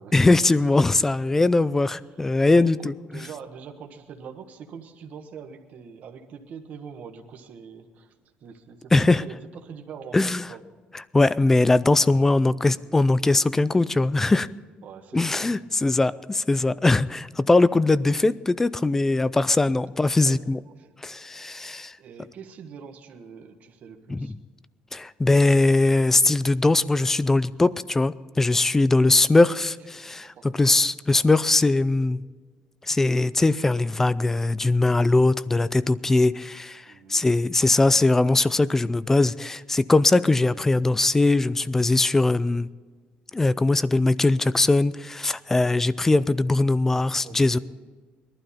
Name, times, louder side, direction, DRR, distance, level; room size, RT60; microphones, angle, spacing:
voice 1, 0.1-2.8 8.9-9.2 10.1-10.4 11.1-14.5 15.1-20.6 21.0-22.0 24.1-24.3 24.9-32.2 32.9-36.8 37.1-42.7 43.3-47.6, left 2 dB, 10° left, 18 dB, 0.3 m, -21 dB
voice 2, 2.1-8.1 8.4-10.6 14.8-15.6 16.0-16.2 20.0-20.4 20.7-21.2 21.6-24.3 29.7-30.8 36.8-37.2 37.6-37.8 46.3-46.4 46.9-47.6, right 6 dB, 45° right, 4 dB, 1.4 m, -43 dB
21.5 x 12.0 x 4.2 m, 1.4 s
cardioid pair, 170°, 3 cm